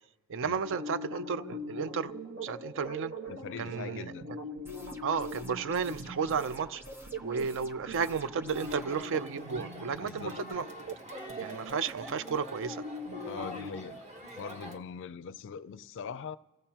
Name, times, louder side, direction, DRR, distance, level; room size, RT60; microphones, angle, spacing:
voice 1, 0.3-2.1 2.4-3.1 3.6-4.0 5.0-6.8 7.2-10.7 11.4-12.8, right 6 dB, 60° right, 0.5 m, -33 dB
sound 1, 0.6-13.7, equal, 75° right, 1.3 m, -42 dB
voice 2, 3.3-4.3 10.0-10.4 13.3-14.0 14.3-16.4, left 6 dB, 60° left, 0.4 m, -41 dB
sound 2, 4.7-9.0, right 1 dB, 10° right, 0.8 m, -50 dB
Crowd, 8.5-14.8, right 1 dB, 30° right, 1.2 m, -45 dB
29.0 x 16.0 x 2.9 m
head